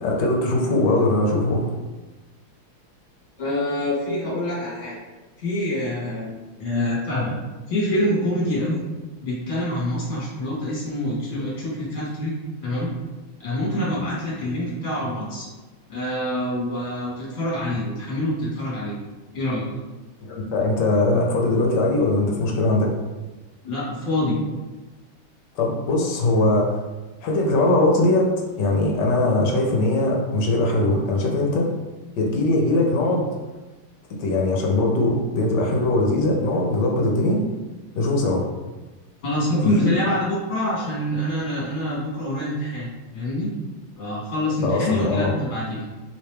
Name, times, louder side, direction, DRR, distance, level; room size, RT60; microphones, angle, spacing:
voice 1, 0.0-1.6 20.3-22.9 25.6-26.8 27.2-28.3 28.6-31.7 32.2-33.3 34.2-37.4 37.9-38.4 39.6-39.9 44.6-45.3, left 2 dB, 70° left, 0 dB, 1.1 m, -21 dB
voice 2, 3.4-4.9 5.4-7.3 7.7-8.8 9.2-12.3 12.6-12.9 13.4-15.5 15.9-18.9 19.3-19.6 23.6-24.4 39.2-43.5 44.0-45.8, left 1 dB, 25° left, -7 dB, 1.4 m, -26 dB
3.2 x 3.0 x 3.3 m, 1.2 s
omnidirectional pair, 2.4 m